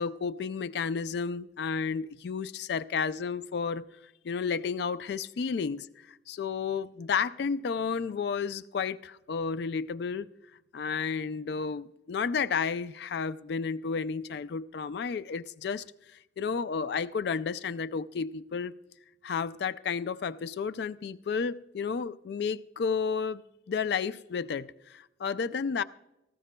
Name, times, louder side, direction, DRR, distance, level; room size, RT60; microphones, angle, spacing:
voice 1, 0.0-3.9 4.2-10.3 10.7-15.8 16.4-18.7 19.2-23.4 23.7-25.8, left 5 dB, 60° left, 0.3 m, -32 dB
18.5 x 15.0 x 2.2 m
head